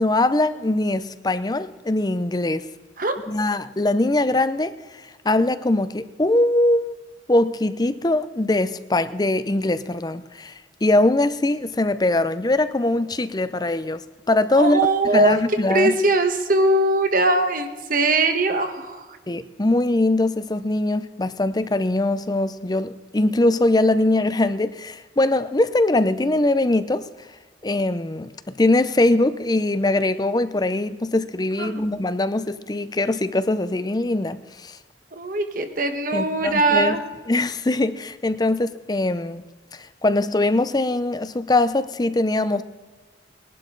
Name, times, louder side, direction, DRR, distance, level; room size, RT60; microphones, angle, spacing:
voice 1, 0.0-2.7 3.3-6.9 7.3-14.0 14.3-14.9 15.1-15.9 19.3-27.1 27.6-28.3 28.6-34.8 36.1-37.0 37.3-39.4 39.7-42.6, left 2 dB, 20° left, 0.5 m, -22 dB
voice 2, 14.5-15.4 15.7-19.1 31.6-31.8 35.1-37.0, right 2 dB, 50° right, 1.4 m, -21 dB
21.0 x 11.5 x 3.9 m
head